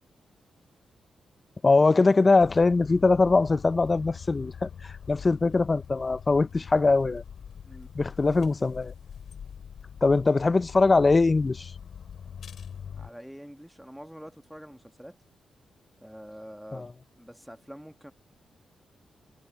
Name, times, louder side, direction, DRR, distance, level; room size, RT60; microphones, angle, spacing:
voice 1, 1.6-7.2 7.9-8.9 10.0-11.7 16.7-16.9, left 3 dB, 35° left, 0.5 m, -22 dB
sound 1, 2.4-13.1, left 7 dB, 70° left, 3.2 m, -43 dB
voice 2, 12.9-15.2 16.0-16.9 17.2-18.1, equal, 5° right, 1.7 m, -45 dB
cardioid pair, 55°, 0 cm